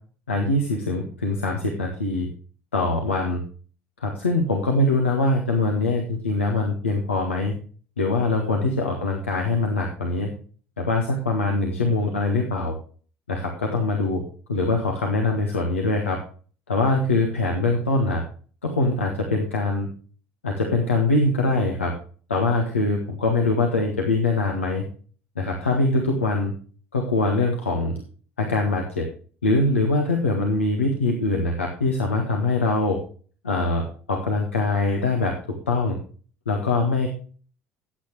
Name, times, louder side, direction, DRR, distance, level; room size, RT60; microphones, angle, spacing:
voice 1, 0.3-2.3 2.7-3.4 4.0-7.5 8.0-10.3 10.8-12.7 13.3-14.2 14.5-16.2 16.7-18.2 18.6-19.9 20.4-21.9 22.3-24.8 25.3-26.5 26.9-28.0 28.4-29.1 29.4-33.0 33.4-36.0 36.4-37.1, left 2 dB, 85° left, 1 dB, 1.6 m, -23 dB
14.5 x 8.8 x 3.2 m, 0.42 s
figure-of-eight pair, 65°, 7 cm